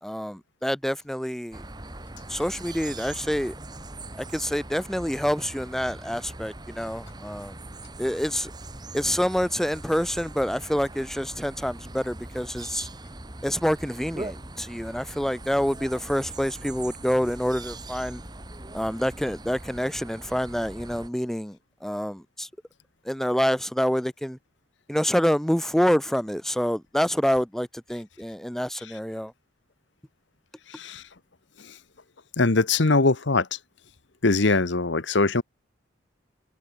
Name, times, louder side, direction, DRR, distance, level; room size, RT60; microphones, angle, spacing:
voice 1, 0.0-1.6 2.3-3.5 4.2-7.6 8.0-8.5 8.9-12.9 13.4-18.2 18.7-22.5 23.0-24.4 24.9-29.3, equal, ahead, 0.5 m, -27 dB
sound 1, 1.5-21.1, right 2 dB, 20° right, 2.1 m, -41 dB
voice 2, 32.4-33.4 34.2-35.4, left 3 dB, 70° left, 1.2 m, -21 dB
head